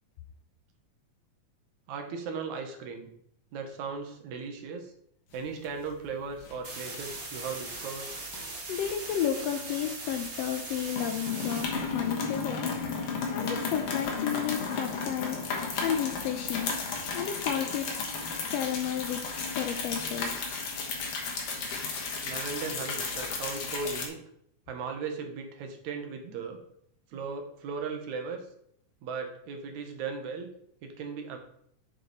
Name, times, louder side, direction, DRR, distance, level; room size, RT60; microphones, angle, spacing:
voice 1, 1.9-3.1 3.5-4.9 5.3-8.2 22.2-24.2 24.7-26.6 27.1-28.4 29.0-30.5 30.8-31.4, right 5 dB, 80° right, 4 dB, 2.5 m, -37 dB
sound 1, 5.4-6.1 6.3-6.6 6.9-7.7 8.3-10.2 10.5-10.7 10.9-24.1, left 4 dB, 60° left, 2.1 m, -34 dB
sound 2, 6.6-11.6, right 2 dB, 35° right, 1.9 m, -39 dB
voice 2, 8.7-12.7 13.0-15.4 15.8-16.7 17.1-17.9 18.5-19.3 19.6-20.4, left 9 dB, 80° left, 6 dB, 1.5 m, -32 dB
7.6 x 4.8 x 4.1 m, 0.70 s
omnidirectional pair, 3.3 m